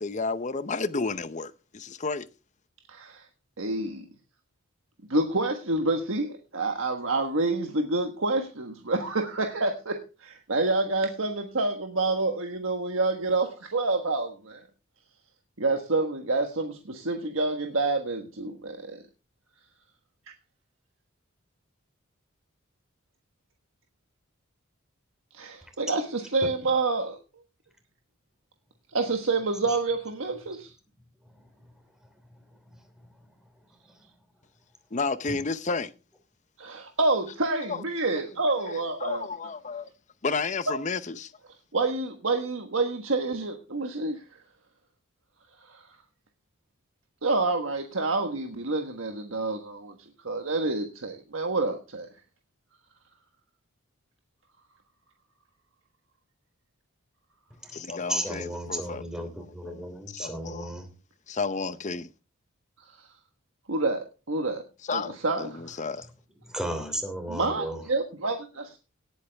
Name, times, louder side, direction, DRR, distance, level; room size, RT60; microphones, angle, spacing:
voice 1, 0.0-2.3 34.9-35.9 37.7-37.8 38.7-39.9 40.2-41.3 57.7-59.3 59.6-60.7 61.3-62.1 64.9-66.1, left 4 dB, 35° left, 0.7 m, -32 dB
voice 2, 2.9-3.2 3.6-4.0 5.1-14.6 15.6-19.0 25.3-27.2 28.9-30.7 36.6-39.3 41.7-44.2 45.7-45.8 47.2-49.9 50.2-52.1 63.7-64.6 64.9-65.8 67.3-68.8, right 3 dB, 75° right, 1.4 m, -28 dB
voice 3, 58.1-60.9 66.5-67.8, right 1 dB, 5° right, 3.0 m, -34 dB
18.5 x 8.5 x 3.5 m
head